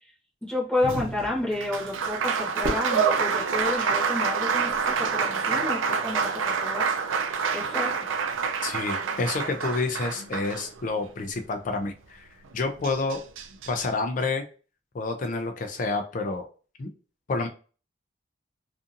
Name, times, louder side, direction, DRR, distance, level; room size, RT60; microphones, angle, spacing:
voice 1, 0.4-6.8 7.5-8.1, left 2 dB, 5° left, -6 dB, 0.9 m, -30 dB
Applause, 0.8-11.1 12.5-12.6 12.8-13.8, right 6 dB, 85° right, 0.4 m, -27 dB
Fireworks, 2.6-4.9, right 1 dB, 55° right, 0.9 m, -36 dB
voice 2, 8.6-12.3 12.5-13.2 13.7-14.4 14.9-16.5 16.8-16.9 17.3-17.5, left 3 dB, 40° left, 5 dB, 0.3 m, -29 dB
2.6 x 2.5 x 2.5 m, 0.37 s
head